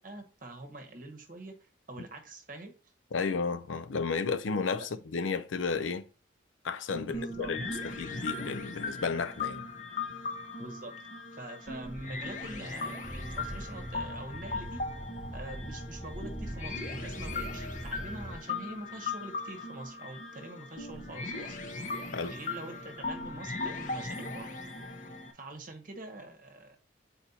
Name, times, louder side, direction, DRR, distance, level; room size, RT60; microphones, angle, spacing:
voice 1, 0.0-1.5 1.9-2.7 6.9-7.5 10.6-10.9 11.3-14.9 15.3-21.6 22.3-24.5 25.3-26.8, right 2 dB, 45° right, 0.9 m, -44 dB
voice 2, 3.1-6.0 6.6-7.7 8.0-9.7 22.1-22.3, left 5 dB, 80° left, 0.5 m, -32 dB
sound 1, 7.1-25.3, left 3 dB, 40° left, 0.8 m, -38 dB
sound 2, 13.0-18.4, right 1 dB, 10° right, 0.3 m, -41 dB
8.2 x 4.3 x 2.8 m
head